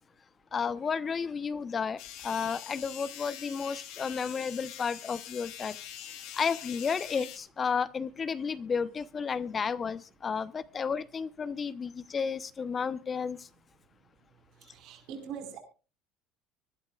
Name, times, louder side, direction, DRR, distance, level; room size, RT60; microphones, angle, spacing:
voice 1, 0.5-5.8 6.4-13.4, left 6 dB, 30° left, 0.8 m, -32 dB
sound 1, 2.0-7.4, left 11 dB, 70° left, 2.5 m, -44 dB
voice 2, 14.5-15.6, right 7 dB, 65° right, 4.8 m, -43 dB
24.0 x 12.0 x 2.4 m
supercardioid pair, 95°, 0 cm